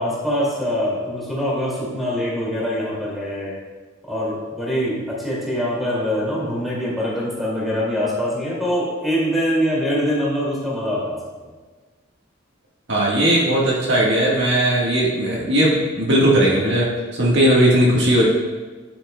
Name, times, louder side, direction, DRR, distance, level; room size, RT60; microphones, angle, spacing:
voice 1, 0.0-3.5 4.0-11.2, equal, ahead, -7 dB, 2.3 m, -23 dB
voice 2, 12.9-18.3, right 1 dB, 60° right, -5 dB, 1.5 m, -18 dB
9.9 x 7.9 x 2.3 m, 1.3 s
head